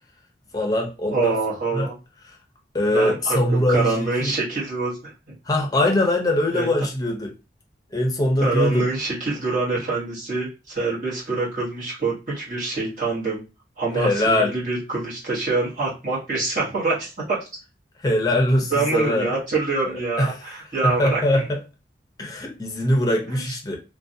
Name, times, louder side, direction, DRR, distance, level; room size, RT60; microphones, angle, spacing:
voice 1, 0.5-1.3 1.7-1.9 2.7-4.3 5.5-7.3 7.9-8.9 14.0-14.6 18.0-19.3 19.8-20.3 20.8-21.6 22.2-23.8, left 1 dB, 20° left, 0.5 m, -22 dB
voice 2, 1.0-2.0 2.9-3.4 3.7-5.4 6.5-6.7 8.4-13.4 13.8-17.4 18.7-21.4 23.3-23.5, right 3 dB, 45° right, 1.1 m, -25 dB
2.5 x 2.2 x 2.5 m
head